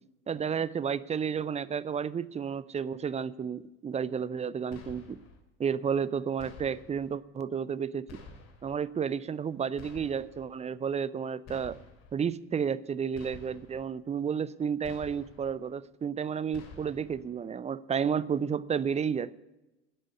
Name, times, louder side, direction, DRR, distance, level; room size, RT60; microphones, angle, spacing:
voice 1, 0.3-5.2 5.6-8.1 8.6-11.8 12.1-19.4, right 7 dB, 20° right, 19 dB, 0.5 m, -32 dB
sound 1, 4.7-5.4 6.4-7.1 8.1-8.8 9.8-10.5 11.5-12.2 13.1-13.8 14.8-15.5 16.5-17.2, left 3 dB, 45° left, 3.1 m, -50 dB
11.0 x 8.8 x 8.1 m, 0.99 s
figure-of-eight pair, 70°, 37 cm